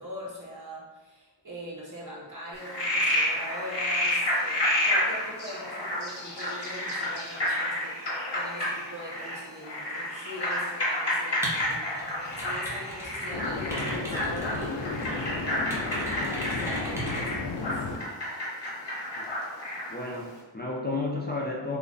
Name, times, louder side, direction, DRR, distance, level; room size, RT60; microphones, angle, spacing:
voice 1, 0.0-8.0 8.3-12.0 12.3-15.7 16.3-17.8, equal, 45° right, -4 dB, 1.1 m, -42 dB
Frog, 2.5-20.0, left 1 dB, 65° left, 1.1 m, -30 dB
sound 1, 8.4-8.6 13.3-18.0, left 3 dB, 85° left, 0.5 m, -34 dB
sound 2, 11.4-13.3 13.5-15.2 15.7-17.3, right 1 dB, 5° right, 1.0 m, -38 dB
voice 2, 19.9-21.8, left 2 dB, 20° left, -3 dB, 0.6 m, -32 dB
3.3 x 2.3 x 3.8 m, 1.3 s
wide cardioid pair, 50°, 45 cm